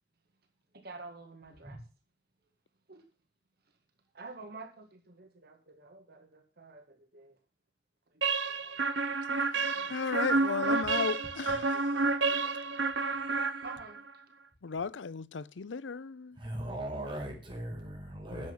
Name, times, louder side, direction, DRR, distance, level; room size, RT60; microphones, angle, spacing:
voice 1, 0.7-1.8 2.9-3.0 4.1-7.4 8.1-8.8 9.5-9.9 11.4-11.8 12.2-12.8 13.6-14.0, right 3 dB, 60° right, 1.9 m, -49 dB
sound 1, 8.2-14.1, right 3 dB, 80° right, 1.1 m, -30 dB
voice 2, 9.9-11.8 14.6-16.4 18.3-18.5, left 5 dB, 85° left, 0.6 m, -35 dB
voice 3, 13.2-13.7 16.3-18.5, right 1 dB, 30° right, 5.7 m, -39 dB
10.5 x 7.7 x 7.2 m
head